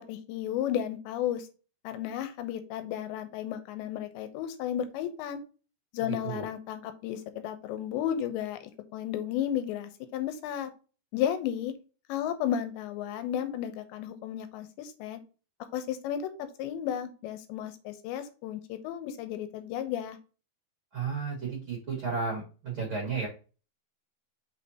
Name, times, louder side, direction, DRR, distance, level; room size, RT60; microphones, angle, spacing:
voice 1, 0.1-1.5 1.8-5.4 5.9-10.7 11.1-11.7 12.1-15.2 15.7-20.2, left 10 dB, 90° left, 10 dB, 3.1 m, -33 dB
voice 2, 20.9-23.3, right 5 dB, 45° right, -2 dB, 1.9 m, -33 dB
6.3 x 5.4 x 2.9 m, 0.35 s
omnidirectional pair, 5.0 m